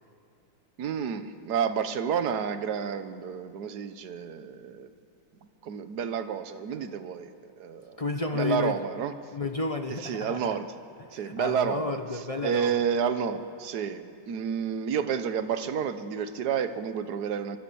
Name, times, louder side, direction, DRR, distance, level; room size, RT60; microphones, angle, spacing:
voice 1, 0.8-4.9 5.6-7.3 7.6-8.0 8.3-9.1 10.0-10.7 11.1-12.0 12.4-17.6, right 7 dB, 60° right, 10 dB, 1.5 m, -30 dB
voice 2, 8.0-8.8 9.3-10.6 11.1-12.8, left 3 dB, 35° left, 7 dB, 0.5 m, -31 dB
25.0 x 23.5 x 7.0 m, 2.4 s
omnidirectional pair, 2.1 m